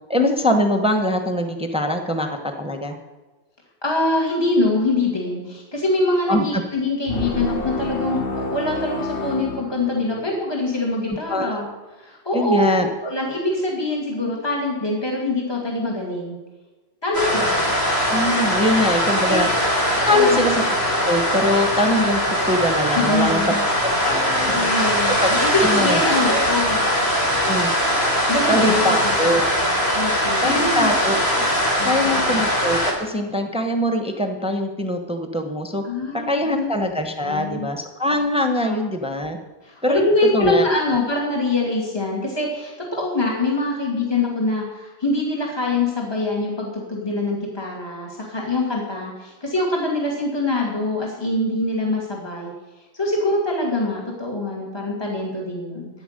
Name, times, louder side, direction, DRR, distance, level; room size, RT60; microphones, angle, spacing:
voice 1, 0.1-3.0 6.3-6.6 11.1-11.6 12.3-12.9 18.1-19.5 20.1-20.6 21.0-23.4 23.8-24.6 25.2-25.3 25.6-26.0 26.3-26.4 27.4-27.7 28.5-29.5 30.4-31.5 31.8-35.8 36.1-39.4 39.8-40.0 40.3-41.0, left 1 dB, 5° right, 4 dB, 1.1 m, -22 dB
voice 2, 3.8-11.7 12.0-12.6 13.0-16.4 17.0-17.8 18.6-19.4 20.0-20.4 22.9-23.6 24.5-26.8 27.3-27.5 28.0-29.0 29.9-30.9 31.8-32.3 35.8-36.7 37.2-37.7 38.6-38.8 39.6-52.5 52.9-55.9, left 2 dB, 25° left, -2 dB, 2.4 m, -24 dB
sound 1, 7.1-10.4, left 2 dB, 60° left, 1.5 m, -28 dB
sound 2, 17.1-32.9, equal, 85° left, 3.5 m, -21 dB
13.5 x 9.6 x 6.6 m, 1.2 s
omnidirectional pair, 1.1 m